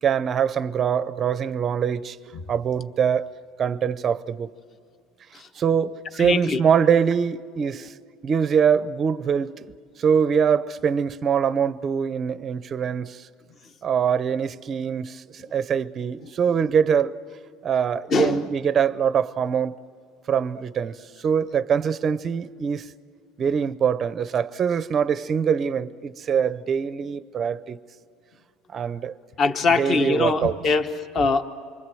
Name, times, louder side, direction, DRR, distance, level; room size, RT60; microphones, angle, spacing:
voice 1, 0.0-2.2 2.5-3.3 3.6-4.5 5.6-7.9 8.2-9.7 10.0-13.2 13.8-15.2 15.5-17.2 17.6-19.8 20.3-21.0 21.2-22.9 23.4-27.8 28.7-29.1 29.8-30.6, right 7 dB, 25° right, 0.6 m, -23 dB
voice 2, 6.2-6.6 16.2-16.3 18.1-18.5 29.4-31.4, left 4 dB, 30° left, 1.1 m, -22 dB
27.5 x 24.0 x 7.7 m
cardioid pair, 155°, 0 cm